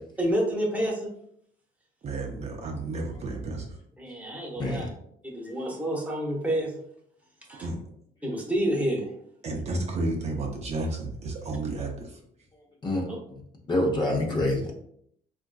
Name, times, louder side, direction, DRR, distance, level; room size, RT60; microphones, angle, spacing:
voice 1, 0.2-1.1 4.0-4.9 5.2-6.8 7.5-7.7 8.2-9.1 13.1-13.2, right 1 dB, 10° right, -1 dB, 0.9 m, -28 dB
voice 2, 2.0-3.8 7.6-7.8 9.4-12.2, right 2 dB, 40° right, 1 dB, 0.6 m, -32 dB
voice 3, 4.6-4.9 12.8-13.1 13.7-14.7, left 1 dB, 25° left, 0 dB, 0.7 m, -26 dB
3.6 x 2.5 x 2.2 m, 0.68 s
cardioid pair, 110°, 17 cm